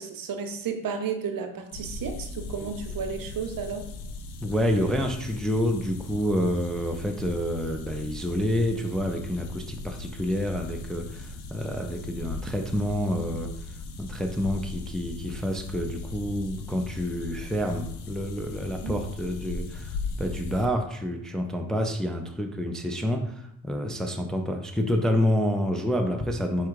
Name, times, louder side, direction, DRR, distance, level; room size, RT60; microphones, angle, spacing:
voice 1, 0.0-3.9 18.8-19.0, right 6 dB, 60° right, 6 dB, 0.8 m, -33 dB
sound 1, 1.7-20.7, left 3 dB, 80° left, 0.7 m, -38 dB
voice 2, 4.4-13.5 14.0-26.7, equal, ahead, 4 dB, 0.5 m, -28 dB
4.5 x 2.4 x 4.6 m, 0.73 s
cardioid pair, 70°, 39 cm